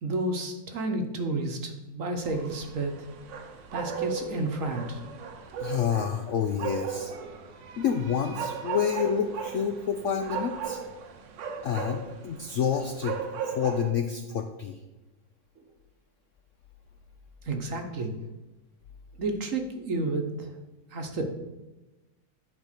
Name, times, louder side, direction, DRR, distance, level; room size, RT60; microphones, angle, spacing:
voice 1, 0.0-3.1 3.7-5.0 17.4-18.1 19.2-20.5 20.9-21.3, right 2 dB, 50° right, 4 dB, 1.2 m, -31 dB
sound 1, 2.2-13.9, right 7 dB, 80° right, 1.6 m, -37 dB
voice 2, 5.6-7.1 7.8-10.8 11.6-14.8, left 7 dB, 70° left, 6 dB, 0.7 m, -28 dB
11.0 x 4.2 x 6.6 m, 1.1 s
omnidirectional pair, 1.9 m